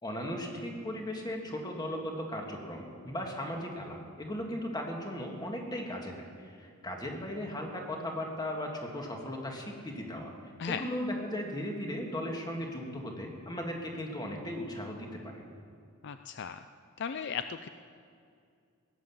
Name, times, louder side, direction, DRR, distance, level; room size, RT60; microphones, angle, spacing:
voice 1, 0.0-10.3 10.7-15.4, left 1 dB, 20° left, 1 dB, 1.9 m, -37 dB
voice 2, 16.0-16.6 17.0-17.7, left 7 dB, 55° left, 10 dB, 0.4 m, -36 dB
17.5 x 10.0 x 7.2 m, 2.4 s
head